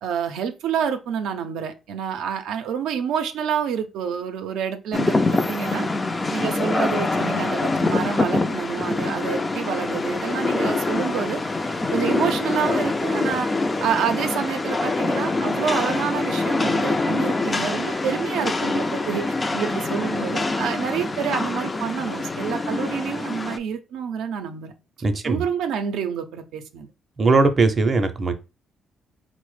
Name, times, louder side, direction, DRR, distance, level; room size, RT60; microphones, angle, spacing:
voice 1, 0.0-5.9 6.3-11.4 11.9-13.5 13.8-24.7 25.2-26.9, right 7 dB, 85° right, 0.4 m, -28 dB
Rain, 4.9-23.6, left 2 dB, 25° left, 0.3 m, -25 dB
voice 2, 25.0-25.4 27.2-28.3, right 3 dB, 30° right, 0.5 m, -19 dB
4.0 x 2.0 x 3.1 m
cardioid pair, 90°, 0 cm